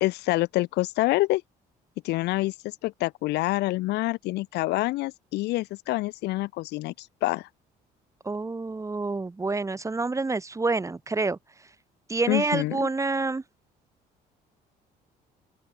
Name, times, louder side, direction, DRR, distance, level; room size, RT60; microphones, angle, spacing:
voice 1, 0.0-1.4 2.0-2.5 2.8-7.5 12.3-12.9, left 19 dB, 85° left, 2.0 m, -26 dB
voice 2, 8.2-11.4 12.1-13.4, right 3 dB, 20° right, 2.7 m, -27 dB
open air
cardioid pair, 110°, 17 cm